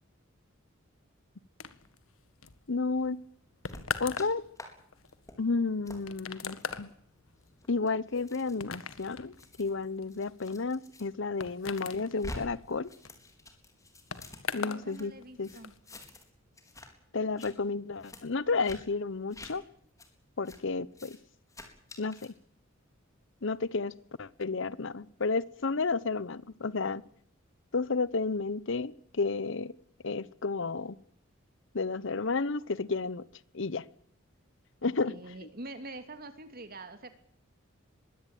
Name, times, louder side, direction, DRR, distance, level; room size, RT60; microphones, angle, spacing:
sound 1, 1.6-14.9 15.1-15.8, left 5 dB, 80° left, 1.8 m, -41 dB
voice 1, 2.7-3.2 4.0-4.5 5.4-6.9 7.7-9.3 9.6-12.9 14.5-15.1 15.4-15.5 17.1-19.6 20.4-21.2 22.0-22.3 23.4-23.9 24.2-27.0 27.7-29.7 30.0-31.0 31.7-33.2 33.5-33.9 34.8-35.1, left 4 dB, 65° left, 20 dB, 0.9 m, -31 dB
sound 2, 3.7-4.3 4.6-4.7 5.1-5.4 5.9-6.0 6.6-6.8 7.5-11.0 11.4-12.4 12.7-15.0 15.4-16.3 16.6-16.9 17.2-17.5 18.0-18.2 18.6-18.8 19.3-19.5 20.0-20.1 20.5-20.6 20.9-21.2 21.5-22.3, left 1 dB, 15° left, 4.1 m, -48 dB
voice 2, 14.6-15.7 34.8-37.1, right 2 dB, 45° right, 9 dB, 2.9 m, -45 dB
22.0 x 17.0 x 9.1 m, 0.67 s
head